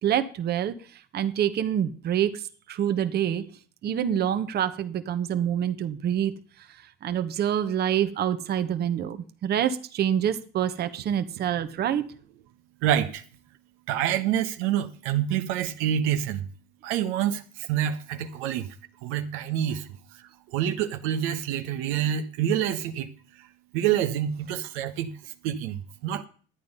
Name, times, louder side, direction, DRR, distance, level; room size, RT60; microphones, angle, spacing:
voice 1, 0.0-2.4 2.7-3.4 3.8-6.3 7.0-12.0, right 10 dB, 50° right, 9 dB, 1.2 m, -26 dB
voice 2, 12.8-13.2 13.9-16.4 16.8-18.7 19.0-23.5 23.7-26.2, right 10 dB, 80° right, 7 dB, 1.2 m, -27 dB
11.5 x 8.9 x 5.5 m, 0.43 s
supercardioid pair, 95°, 21 cm